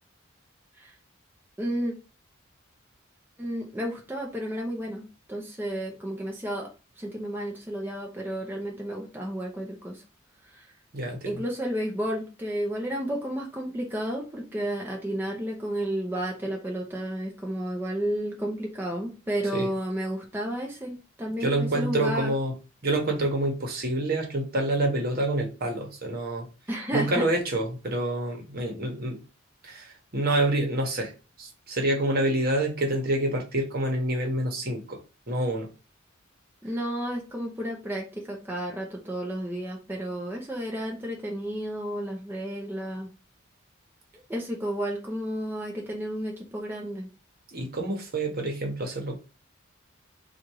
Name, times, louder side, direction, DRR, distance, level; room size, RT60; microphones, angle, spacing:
voice 1, 1.6-1.9 3.4-5.0 5.3-6.7 7.0-10.0 10.5-10.7 11.2-22.3 26.7-27.3 36.6-43.1 44.3-47.1, equal, 10° right, 0.7 m, -32 dB
voice 2, 10.9-11.4 19.5-19.7 21.4-22.5 22.8-26.5 26.9-29.2 29.6-31.1 31.4-35.0 35.3-35.7 47.5-49.2, right 1 dB, 50° right, 1.2 m, -27 dB
4.3 x 2.5 x 4.7 m
head